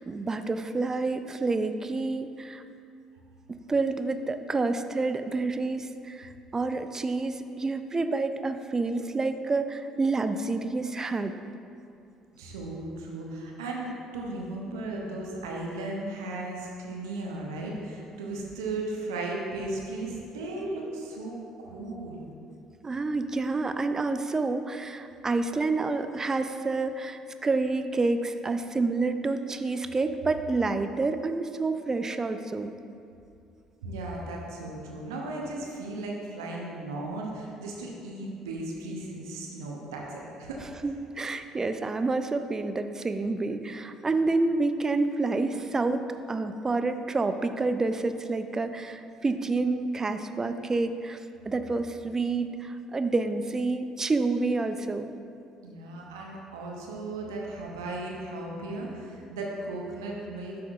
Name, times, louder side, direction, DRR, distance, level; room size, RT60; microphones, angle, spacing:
voice 1, 0.0-2.6 3.7-11.3 22.8-32.7 40.8-51.2 51.5-55.1, right 3 dB, 25° right, 9 dB, 0.4 m, -28 dB
voice 2, 12.4-22.3 33.8-40.6 55.6-60.7, right 2 dB, 75° right, -1 dB, 0.8 m, -36 dB
12.5 x 6.0 x 2.4 m, 2.5 s
figure-of-eight pair, 50°, 2 cm